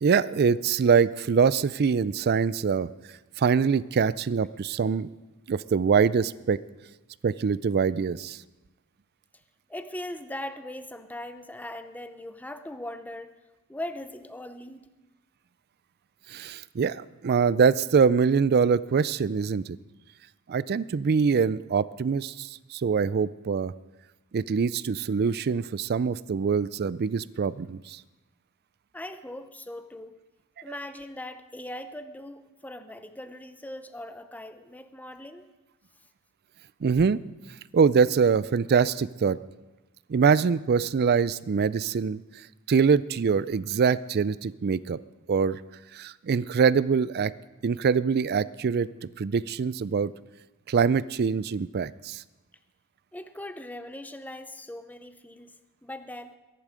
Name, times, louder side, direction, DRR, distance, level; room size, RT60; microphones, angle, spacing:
voice 1, 0.0-2.9 3.4-5.1 5.5-6.6 7.2-8.4 16.3-19.8 20.5-23.7 24.3-28.0 36.8-37.2 37.7-39.4 40.1-42.2 42.7-45.0 45.3-45.6 45.9-47.3 47.6-48.9 49.2-50.1 50.7-52.2, right 6 dB, 45° right, 18 dB, 0.4 m, -24 dB
voice 2, 9.7-13.3 13.7-14.9 28.9-30.2 30.6-35.5 53.1-55.5 55.8-56.4, left 1 dB, 5° left, 9 dB, 0.7 m, -40 dB
22.0 x 11.0 x 5.0 m, 1.1 s
head